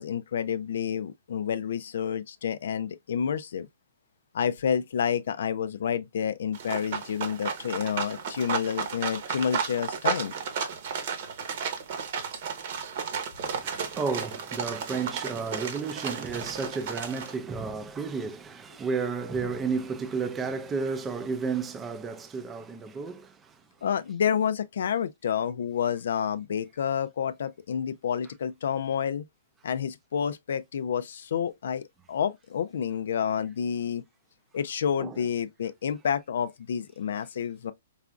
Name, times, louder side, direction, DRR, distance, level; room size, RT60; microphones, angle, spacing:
voice 1, 0.0-3.7 4.3-10.3 23.8-29.2 29.6-34.0 34.5-37.7, left 8 dB, 70° left, 0.3 m, -29 dB
sound 1, 6.5-17.3, right 6 dB, 50° right, 0.9 m, -33 dB
voice 2, 13.4-23.6 35.0-35.3, right 5 dB, 15° right, 0.4 m, -32 dB
4.7 x 2.4 x 2.3 m
hypercardioid pair, 150°, 0 cm